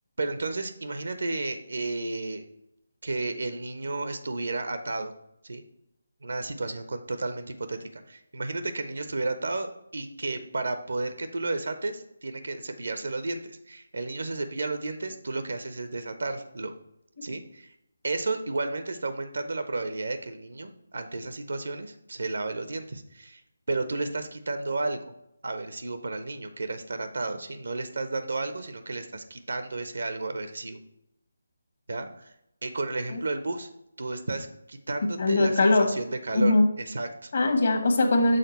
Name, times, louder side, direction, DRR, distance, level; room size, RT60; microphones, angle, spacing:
voice 1, 0.2-2.4 3.0-5.1 5.4-5.6 6.2-16.7 17.2-17.7 18.0-23.4 23.7-25.0 25.4-30.8 31.9-32.3 32.6-33.7 34.0-37.3, right 2 dB, 65° right, 9 dB, 0.5 m, -32 dB
voice 2, 35.2-35.9 36.3-36.6 37.3-38.4, left 2 dB, 50° left, 4 dB, 1.1 m, -21 dB
6.5 x 3.9 x 4.0 m, 0.82 s
figure-of-eight pair, 150°, 0 cm